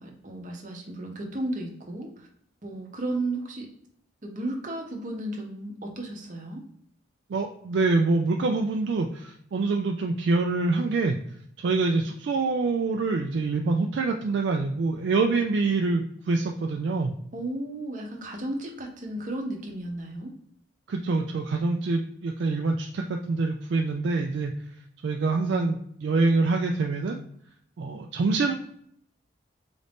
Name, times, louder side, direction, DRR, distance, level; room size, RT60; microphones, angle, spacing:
voice 1, 0.0-2.3 2.6-3.7 4.2-6.6 17.3-20.3, right 1 dB, 40° right, 1 dB, 0.7 m, -34 dB
voice 2, 7.3-11.2 11.6-17.1 20.9-24.5 25.0-27.2 27.8-28.5, right 3 dB, 60° right, 3 dB, 0.3 m, -25 dB
3.9 x 2.6 x 3.5 m, 0.68 s
head